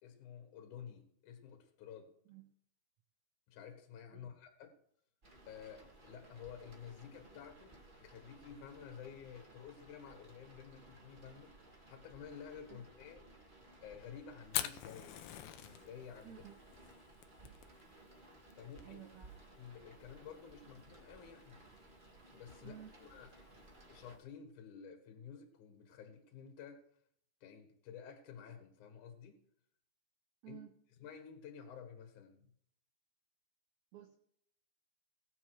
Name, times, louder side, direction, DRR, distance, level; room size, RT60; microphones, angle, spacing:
voice 1, 0.0-2.1 3.5-4.8 5.5-11.6 11.9-13.3 13.8-15.2 15.6-16.4 18.5-19.0 19.6-21.6 22.3-23.3 23.9-26.9 27.4-29.4 30.5-30.6 31.0-32.5, left 7 dB, 60° left, 2.7 m, -52 dB
sound 1, 5.2-24.2, right 2 dB, 25° right, 1.0 m, -59 dB
Fire, 14.5-24.2, left 12 dB, 75° left, 2.4 m, -47 dB
voice 2, 16.2-16.6 18.8-19.3 22.6-23.0 30.4-30.7 33.9-34.2, right 10 dB, 75° right, 1.7 m, -53 dB
19.0 x 7.1 x 4.8 m
omnidirectional pair, 4.5 m